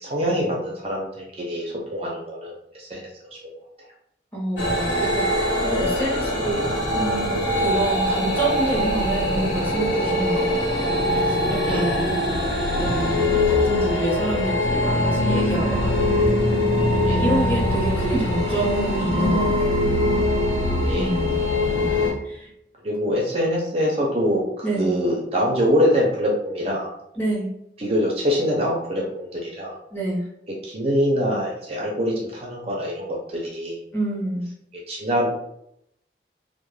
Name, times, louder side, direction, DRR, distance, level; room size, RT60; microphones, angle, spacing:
voice 1, 0.0-3.6 11.6-11.9 17.1-17.2 20.9-21.1 22.8-26.9 27.8-29.8 30.6-33.8 34.9-35.3, equal, 35° right, -2 dB, 0.4 m, -24 dB
voice 2, 4.3-6.6 6.9-10.5 11.1-12.1 12.7-15.9 17.1-19.9 20.9-22.5 24.6-25.0 27.2-27.5 29.9-30.2 33.9-34.5, right 1 dB, 10° left, -5 dB, 0.8 m, -27 dB
sound 1, 4.6-22.1, left 1 dB, 85° left, 1.0 m, -22 dB
2.2 x 2.1 x 3.1 m, 0.76 s
head